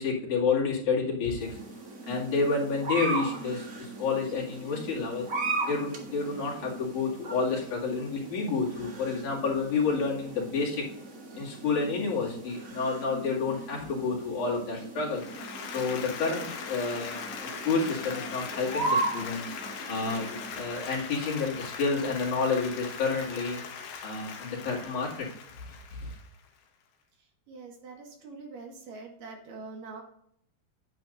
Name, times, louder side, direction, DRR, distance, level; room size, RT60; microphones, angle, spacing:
voice 1, 0.0-1.5 2.1-5.3 5.7-10.9 11.4-15.2 15.6-19.5 19.9-23.6 24.0-25.3 25.9-26.1, left 4 dB, 60° left, -5 dB, 3.6 m, -29 dB
sound 1, 1.4-20.5, right 3 dB, 85° right, 0.7 m, -37 dB
Applause, 15.1-26.5, left 6 dB, 80° left, 3.1 m, -40 dB
voice 2, 27.5-30.0, right 4 dB, 70° right, 1 dB, 3.1 m, -44 dB
9.6 x 8.7 x 2.5 m, 0.69 s
omnidirectional pair, 4.2 m